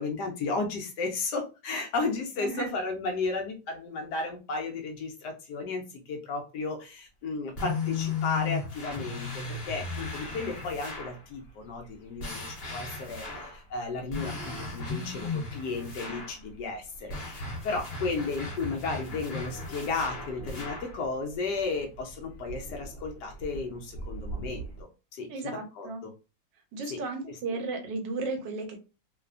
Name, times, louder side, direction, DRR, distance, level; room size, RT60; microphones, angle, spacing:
voice 1, 0.0-5.8 6.1-24.7 25.1-26.1 26.9-27.0 27.3-27.4, left 3 dB, 75° left, 3 dB, 1.0 m, -34 dB
voice 2, 2.4-2.7 25.3-26.0 26.7-28.8, right 3 dB, 75° right, 5 dB, 1.3 m, -34 dB
sound 1, 7.1-24.8, right 2 dB, 55° left, 1.0 m, -47 dB
sound 2, 7.6-11.2 12.2-13.6 14.1-16.4 17.1-21.0, left 4 dB, 40° left, 1.2 m, -36 dB
3.1 x 2.1 x 2.4 m, 0.30 s
omnidirectional pair, 2.0 m